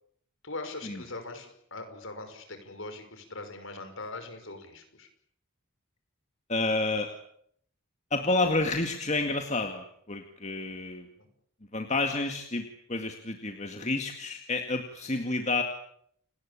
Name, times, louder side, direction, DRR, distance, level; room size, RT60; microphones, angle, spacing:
voice 1, 0.4-5.1 11.2-11.3, left 2 dB, 60° left, 7 dB, 5.8 m, -41 dB
voice 2, 6.5-7.1 8.1-11.1 11.7-15.6, left 2 dB, 30° left, 5 dB, 2.1 m, -29 dB
29.5 x 19.5 x 8.7 m, 0.69 s
head